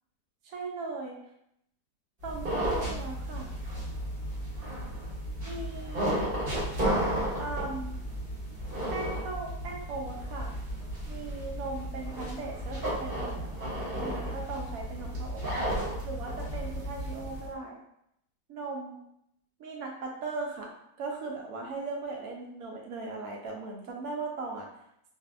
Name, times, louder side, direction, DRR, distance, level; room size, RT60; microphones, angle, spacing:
voice 1, 0.4-1.2 2.2-3.5 5.4-6.2 7.4-8.0 8.9-10.6 11.1-15.5 16.0-17.8 18.5-19.0 19.6-20.7 21.0-24.7, right 3 dB, 70° right, 0 dB, 1.0 m, -38 dB
sound 1, 2.2-17.5, right 1 dB, 35° right, 1.0 m, -33 dB
2.6 x 2.5 x 2.4 m, 0.75 s
omnidirectional pair, 1.8 m